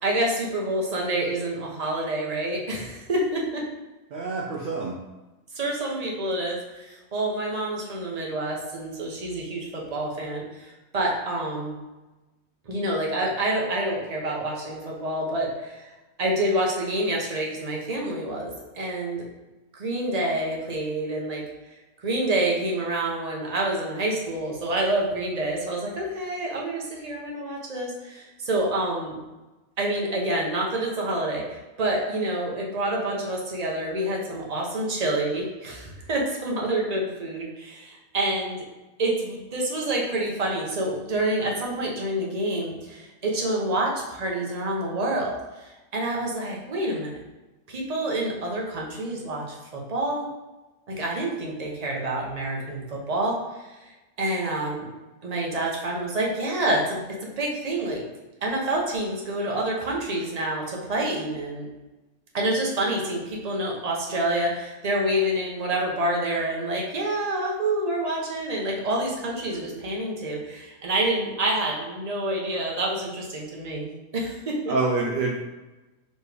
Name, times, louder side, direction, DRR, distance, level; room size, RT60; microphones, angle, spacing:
voice 1, 0.0-3.6 5.5-11.8 12.7-15.9 16.2-19.2 19.7-21.4 22.0-29.1 29.8-38.6 39.0-47.2 47.7-50.2 51.0-53.8 54.2-54.9 55.2-58.0 58.4-61.7 62.3-73.9 74.1-74.7, right 1 dB, 35° right, -2 dB, 0.8 m, -27 dB
voice 2, 4.1-5.0 74.7-75.5, right 3 dB, 65° right, -1 dB, 0.5 m, -26 dB
4.3 x 3.1 x 3.3 m, 1.1 s
omnidirectional pair, 1.5 m